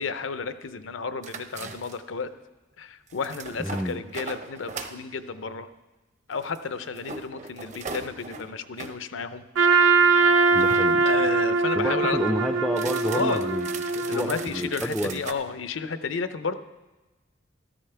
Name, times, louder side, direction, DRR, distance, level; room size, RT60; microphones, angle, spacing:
voice 1, 0.0-2.3 2.8-5.7 6.3-9.4 10.5-10.6 11.0-12.4 13.0-13.5 14.1-16.6, left 4 dB, 75° left, 11 dB, 0.6 m, -32 dB
sound 1, 1.2-2.1 3.1-5.0 6.3-9.0 10.2-11.4 12.7-15.3, right 4 dB, 40° right, 0.7 m, -40 dB
voice 2, 3.6-4.0 10.5-11.0 11.8-13.7 13.9-15.2, equal, ahead, 6 dB, 0.3 m, -29 dB
Trumpet, 9.5-14.6, right 4 dB, 85° right, 0.9 m, -22 dB
14.0 x 13.0 x 3.3 m, 1.1 s
head